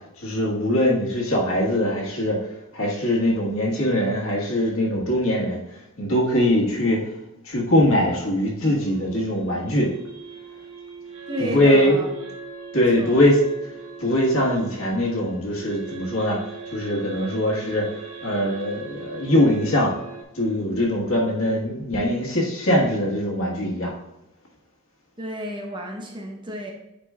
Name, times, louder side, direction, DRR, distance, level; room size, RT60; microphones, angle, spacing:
voice 1, 0.2-7.1 7.4-9.9 11.4-12.1 12.7-13.7 14.0-19.9 20.3-23.9, left 1 dB, 65° left, -2 dB, 1.6 m, -22 dB
sound 1, 8.8-20.2, right 4 dB, 65° right, 1.6 m, -40 dB
voice 2, 11.3-12.1 13.0-13.2 25.2-26.7, right 1 dB, 20° right, 1 dB, 0.8 m, -31 dB
9.0 x 5.2 x 2.4 m, 0.93 s
head